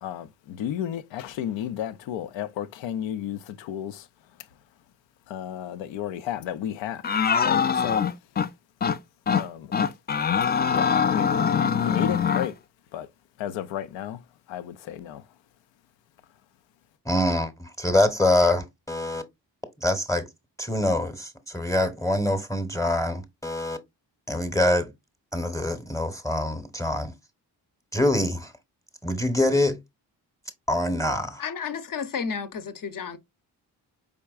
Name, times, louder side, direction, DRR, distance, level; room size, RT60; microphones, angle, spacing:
voice 1, 0.0-4.1 5.3-8.0 9.4-9.8 10.7-11.3 11.8-12.6 12.9-13.1 13.4-14.2 14.5-15.2, left 10 dB, 85° left, 0.5 m, -33 dB
sound 1, 7.0-8.5 8.8-9.0 9.3-9.4 9.7-12.5, left 7 dB, 25° left, 0.3 m, -23 dB
voice 2, 17.0-19.2 19.8-20.3 20.6-23.8 24.3-24.9 25.3-27.1 27.9-28.5 29.0-29.8 30.7-31.4, left 1 dB, 5° left, 0.9 m, -25 dB
voice 3, 31.4-33.2, left 6 dB, 45° left, 0.8 m, -32 dB
4.4 x 3.5 x 2.4 m
supercardioid pair, 40°, 44 cm